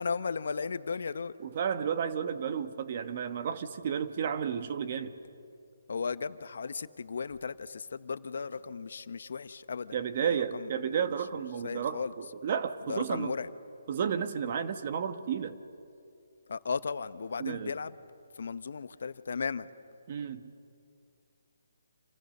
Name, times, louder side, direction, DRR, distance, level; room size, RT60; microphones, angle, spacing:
voice 1, 0.0-1.3 5.9-11.0 11.3-12.1 12.9-13.5 16.5-17.9 18.3-19.7, left 5 dB, 60° left, 14 dB, 0.9 m, -36 dB
voice 2, 1.4-5.1 9.9-13.3 13.9-15.5 17.4-17.7 20.1-20.5, right 7 dB, 35° right, 10 dB, 1.2 m, -32 dB
30.0 x 27.0 x 6.6 m, 2.5 s
hypercardioid pair, 170°, 0 cm